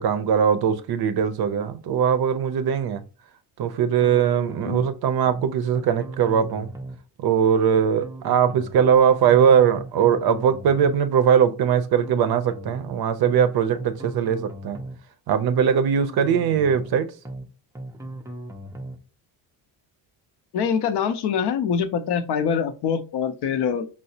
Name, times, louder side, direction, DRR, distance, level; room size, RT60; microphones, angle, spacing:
voice 1, 0.0-3.0 3.6-6.7 7.2-14.8 15.3-17.1, right 8 dB, 60° right, 0.5 m, -20 dB
sound 1, 4.0-4.9 5.2-5.5 5.7-7.0 8.0-8.9 9.2-9.5 9.7-11.0 12.0-12.9 13.2-13.5 13.7-15.0 16.0-16.9 17.2-17.5 17.7-19.0, right 1 dB, 10° right, 0.3 m, -37 dB
voice 2, 20.5-23.9, left 7 dB, 60° left, 0.6 m, -24 dB
4.7 x 2.0 x 2.7 m
cardioid pair, 95°, 45 cm